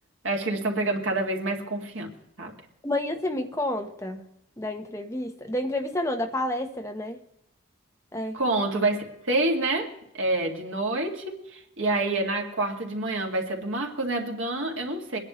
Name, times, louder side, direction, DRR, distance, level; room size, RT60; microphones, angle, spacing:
voice 1, 0.2-2.1 2.4-2.5 8.3-15.2, right 2 dB, 90° right, 1 dB, 2.3 m, -27 dB
voice 2, 2.8-4.2 4.6-7.2 8.1-8.4, left 1 dB, 15° left, 4 dB, 1.1 m, -29 dB
23.0 x 10.5 x 3.2 m, 0.79 s
head